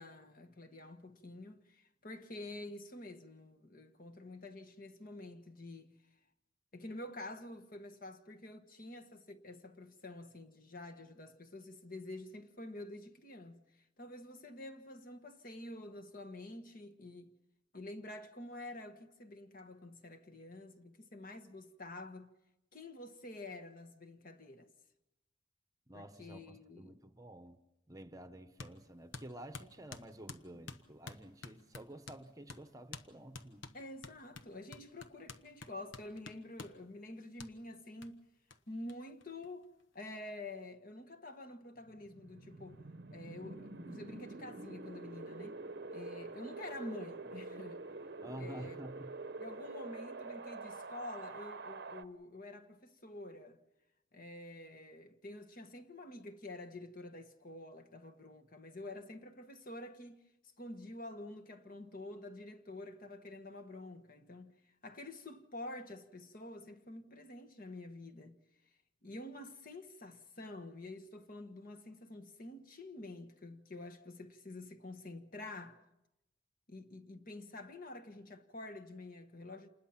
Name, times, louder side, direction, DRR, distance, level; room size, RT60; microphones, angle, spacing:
voice 1, 0.0-5.9 6.7-17.3 17.7-22.3 22.7-24.7 25.9-27.0 30.5-30.6 33.7-38.2 38.7-39.7 39.9-42.8 43.1-45.6 45.9-47.8 48.4-48.8 49.4-53.6 54.1-60.2 60.6-68.4 69.0-75.8 76.7-79.7, left 2 dB, 45° left, 1.3 m, -48 dB
voice 2, 25.9-27.6 27.9-33.6 48.2-49.2, right 1 dB, 15° right, 0.9 m, -50 dB
sound 1, 28.6-28.8 29.1-32.2 32.5-32.6 32.9-33.1 33.3-36.8 37.4-37.5 38.0-38.1 38.5-38.6 38.9-39.0 39.2-39.9, left 4 dB, 70° left, 1.2 m, -49 dB
Wind, 41.8-52.0, right 3 dB, 55° right, 0.8 m, -46 dB
27.5 x 20.5 x 5.9 m
head